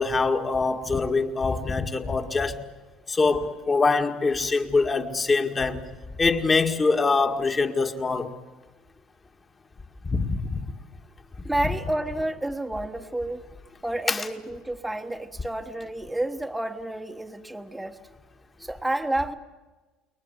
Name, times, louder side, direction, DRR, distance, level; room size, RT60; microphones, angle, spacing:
voice 1, 0.0-2.7 3.1-5.9 6.2-8.4 10.0-10.6 14.1-14.3, left 4 dB, 25° left, 2.0 m, -24 dB
voice 2, 11.4-13.4 13.8-18.0 18.6-19.4, right 1 dB, 5° right, 1.3 m, -30 dB
29.0 x 22.5 x 8.0 m
cardioid pair, 130°, 0 cm